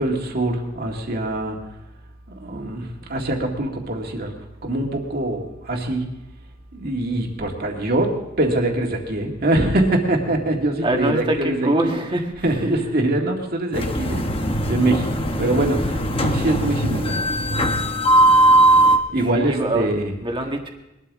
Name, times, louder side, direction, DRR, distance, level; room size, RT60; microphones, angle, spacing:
voice 1, 0.0-1.6 2.4-4.3 4.6-6.0 6.7-11.9 12.4-14.3 14.7-15.1 15.4-17.2 19.1-20.1, right 1 dB, 50° right, 1 dB, 2.1 m, -23 dB
voice 2, 10.8-12.3 19.3-19.9 20.2-20.7, right 1 dB, 25° right, 3 dB, 1.6 m, -23 dB
sound 1, 13.7-19.0, right 1 dB, 30° left, 1.0 m, -19 dB
21.0 x 12.5 x 3.7 m, 0.91 s
head